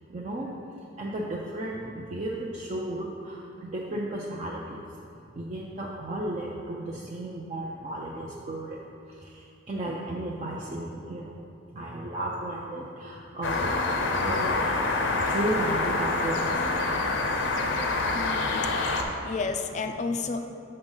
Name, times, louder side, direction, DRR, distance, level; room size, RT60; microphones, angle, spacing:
voice 1, 0.1-0.5 1.0-4.8 5.3-8.8 9.1-11.4 11.7-13.7 14.1-14.6 15.3-16.9, right 1 dB, 40° right, -3 dB, 0.5 m, -34 dB
sound 1, 13.4-19.0, left 3 dB, 80° left, 0.6 m, -26 dB
voice 2, 18.1-20.4, left 4 dB, 40° left, 7 dB, 0.3 m, -32 dB
6.6 x 3.9 x 5.4 m, 2.6 s
head